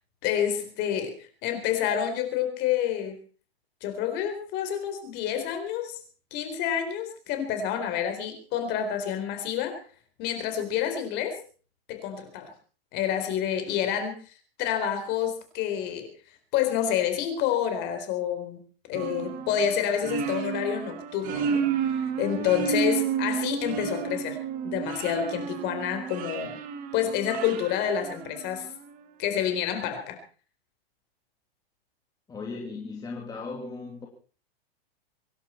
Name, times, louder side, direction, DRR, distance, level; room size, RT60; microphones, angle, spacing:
voice 1, 0.2-3.1 3.8-6.0 6.3-9.8 10.2-11.4 11.9-12.5 12.9-14.1 14.6-16.1 16.5-18.6 18.9-24.4 24.6-26.6 26.9-28.7 29.2-30.2, left 9 dB, 35° left, 7 dB, 4.1 m, -28 dB
sound 1, 18.9-28.7, right 7 dB, 25° right, 1.6 m, -31 dB
voice 2, 32.3-34.1, left 4 dB, 10° left, 0 dB, 2.6 m, -37 dB
24.5 x 11.5 x 4.5 m, 0.38 s
hypercardioid pair, 150°, 31 cm